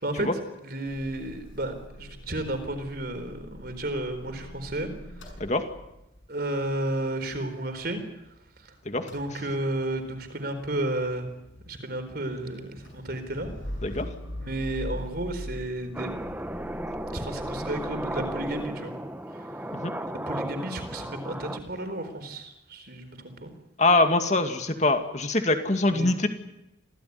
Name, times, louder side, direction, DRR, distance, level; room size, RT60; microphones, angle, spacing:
voice 1, 0.6-4.9 6.3-8.0 9.1-11.3 11.7-13.5 14.4-16.1 17.1-18.9 19.3-19.6 20.0-23.5 25.9-26.1, right 1 dB, 50° right, 8 dB, 4.2 m, -32 dB
Motor vehicle (road) / Engine starting / Idling, 0.9-8.6 8.8-18.7, equal, 85° left, 7.0 m, -43 dB
sound 1, 15.9-21.6, right 1 dB, 10° right, 1.1 m, -34 dB
voice 2, 23.8-26.3, left 2 dB, 35° left, 7 dB, 2.3 m, -23 dB
27.0 x 17.0 x 9.6 m, 0.89 s
head